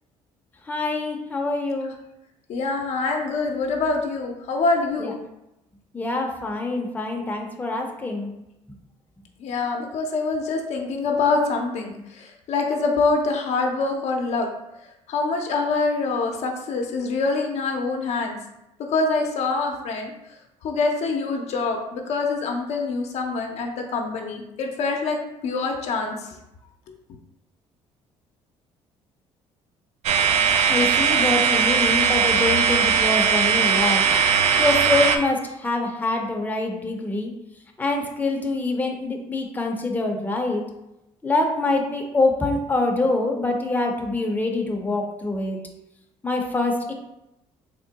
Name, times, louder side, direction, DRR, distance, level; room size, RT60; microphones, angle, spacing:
voice 1, 0.7-1.9 5.0-5.1 5.9-8.3 30.7-34.0 34.6-37.3 37.8-40.6 41.2-45.6 46.2-46.9, left 2 dB, 15° left, 1 dB, 0.6 m, -25 dB
voice 2, 2.5-5.2 9.4-14.5 15.1-18.3 18.9-20.1 20.6-25.2 25.4-26.1, left 3 dB, 65° left, 2 dB, 0.6 m, -25 dB
sound 1, 30.0-35.2, right 7 dB, 70° right, 0.4 m, -19 dB
3.6 x 2.0 x 3.9 m, 0.89 s
cardioid pair, 90°, 12 cm